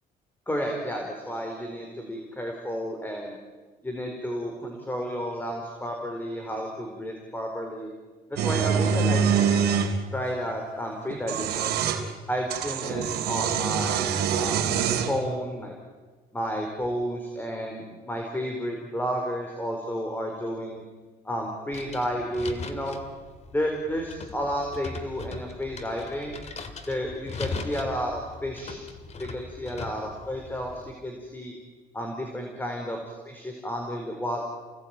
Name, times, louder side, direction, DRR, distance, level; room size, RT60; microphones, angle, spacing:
voice 1, 0.5-3.4 3.8-7.9 8.3-9.6 10.1-11.7 12.3-14.7 15.1-15.7 16.3-20.8 21.2-23.0 23.5-26.4 26.9-28.8 29.2-31.5 31.9-34.4, equal, 10° left, 2 dB, 4.6 m, -32 dB
sound 1, 8.4-9.9 11.1-12.0 12.5-15.2, right 7 dB, 75° right, 3.6 m, -25 dB
sound 2, 21.7-30.9, left 4 dB, 40° left, 2.7 m, -40 dB
29.5 x 19.0 x 9.2 m, 1.3 s
cardioid pair, 110°, 17 cm